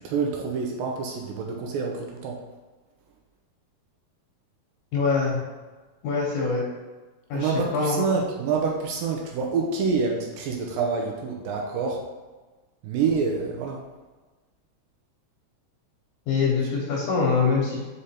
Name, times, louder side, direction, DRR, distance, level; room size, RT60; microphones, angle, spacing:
voice 1, 0.0-2.4 7.3-12.0 12.8-13.8, right 5 dB, 75° right, 0 dB, 2.2 m, -27 dB
voice 2, 4.9-5.4 6.0-6.6 7.3-8.0 16.3-17.8, left 4 dB, 70° left, -2 dB, 2.1 m, -24 dB
5.1 x 5.0 x 4.3 m, 1.3 s
omnidirectional pair, 4.4 m